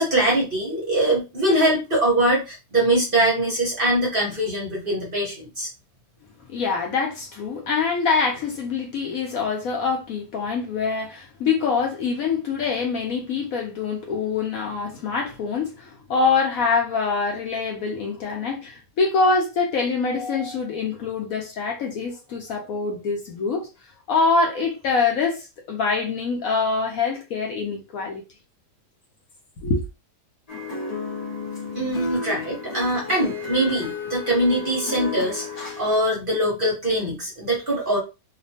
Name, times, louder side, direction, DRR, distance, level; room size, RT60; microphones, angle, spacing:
voice 1, 0.0-5.7 31.7-38.0, right 1 dB, 40° right, 1.0 m, -22 dB
voice 2, 6.5-23.7 24.1-28.2 29.6-29.8, left 4 dB, 65° left, 0.9 m, -24 dB
sound 1, 30.5-36.0, left 3 dB, 45° left, 0.5 m, -32 dB
2.9 x 2.1 x 2.7 m
omnidirectional pair, 1.8 m